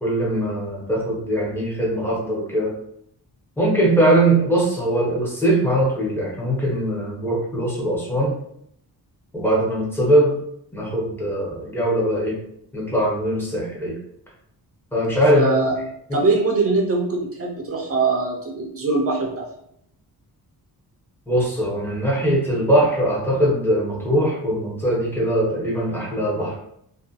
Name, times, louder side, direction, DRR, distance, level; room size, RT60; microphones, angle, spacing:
voice 1, 0.0-2.7 3.6-8.4 9.3-10.4 10.7-12.4 12.7-14.0 14.9-15.5 21.3-26.6, right 1 dB, 5° left, -4 dB, 0.5 m, -21 dB
voice 2, 15.3-15.8 16.1-19.5, right 3 dB, 40° right, 0 dB, 0.4 m, -22 dB
2.4 x 2.2 x 2.6 m, 0.72 s
wide cardioid pair, 175°, 39 cm